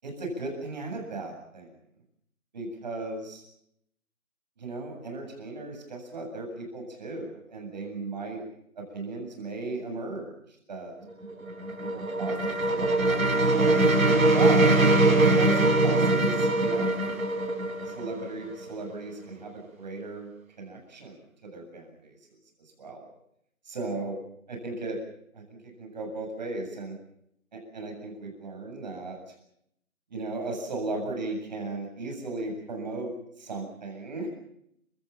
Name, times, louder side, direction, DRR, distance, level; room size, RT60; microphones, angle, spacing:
voice 1, 0.0-1.7 2.5-3.4 4.6-8.4 8.8-10.9 11.8-13.7 14.3-14.8 15.3-17.1 17.8-20.3 20.6-21.2 21.4-22.2 22.6-23.1 23.6-24.2 24.5-25.0 25.3-27.0 27.5-29.3 30.1-34.3, right 2 dB, 30° right, 2 dB, 7.7 m, -36 dB
sound 1, 11.1-18.9, right 2 dB, 75° right, 5.4 m, -22 dB
29.5 x 18.0 x 7.2 m, 0.76 s
figure-of-eight pair, 170°, 42 cm